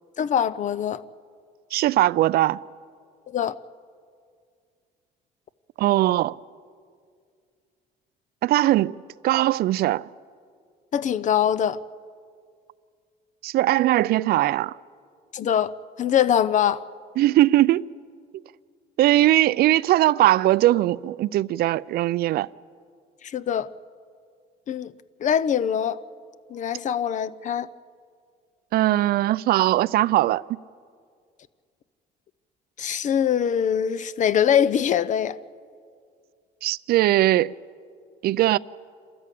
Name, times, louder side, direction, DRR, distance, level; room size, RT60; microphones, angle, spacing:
voice 1, 0.2-1.0 3.3-3.5 10.9-11.8 15.3-15.7 16.0-16.8 23.2-23.7 24.7-24.9 25.2-26.0 26.5-27.7 32.8-35.4, left 9 dB, 45° left, 0.7 m, -23 dB
voice 2, 1.7-2.6 5.8-6.4 8.4-9.0 9.2-10.1 13.4-14.8 17.2-17.9 19.0-22.5 28.7-30.6 36.6-37.5 38.2-38.6, right 15 dB, 65° right, 0.5 m, -20 dB
27.5 x 13.5 x 8.4 m
cardioid pair, 110°, 17 cm